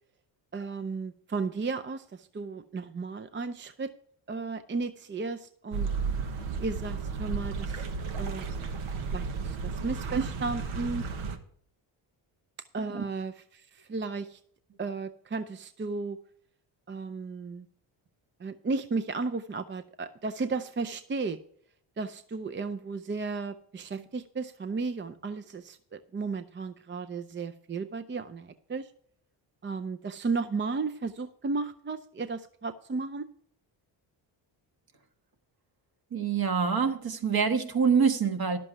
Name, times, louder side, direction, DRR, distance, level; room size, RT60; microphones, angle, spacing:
voice 1, 0.5-3.9 4.3-5.9 6.6-7.9 8.2-8.4 9.0-11.0 12.7-14.4 14.8-16.2 16.9-17.7 18.4-21.4 22.0-28.9 29.6-33.3, right 4 dB, 25° right, 0.5 m, -34 dB
sound 1, 5.7-11.4, right 5 dB, 80° right, 1.2 m, -33 dB
voice 2, 36.1-38.6, right 6 dB, 45° right, 1.4 m, -26 dB
11.0 x 7.6 x 4.7 m
cardioid pair, 70°, 50 cm